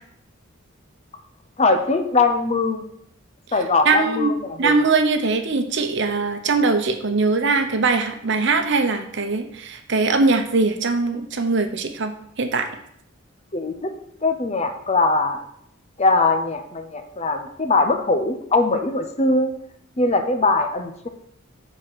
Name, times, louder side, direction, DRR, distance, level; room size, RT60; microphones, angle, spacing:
voice 1, 1.6-2.8 3.5-4.7 13.5-13.9 14.2-15.4 16.0-19.5 20.0-21.1, left 3 dB, 35° left, 6 dB, 0.8 m, -21 dB
voice 2, 3.8-4.3 4.6-12.7, right 3 dB, 65° right, 7 dB, 0.9 m, -21 dB
7.6 x 4.4 x 6.3 m, 0.72 s
head